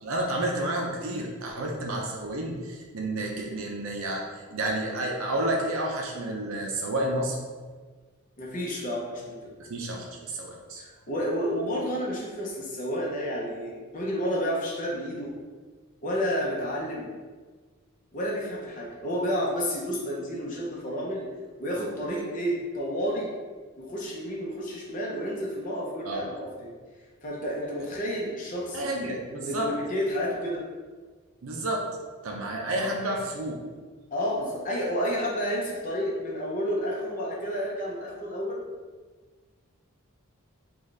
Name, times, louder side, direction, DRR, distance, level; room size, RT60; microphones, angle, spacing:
voice 1, 0.0-7.4 9.6-10.8 26.0-26.2 28.7-29.7 31.4-31.9 32.2-33.6, right 1 dB, 70° right, 0 dB, 0.5 m, -30 dB
voice 2, 8.4-9.6 10.8-15.3 16.0-17.1 18.1-21.3 21.6-23.3 23.8-26.7 27.2-28.9 29.3-30.6 34.1-38.6, equal, 35° left, -4 dB, 0.6 m, -30 dB
3.9 x 2.3 x 3.2 m, 1.4 s
head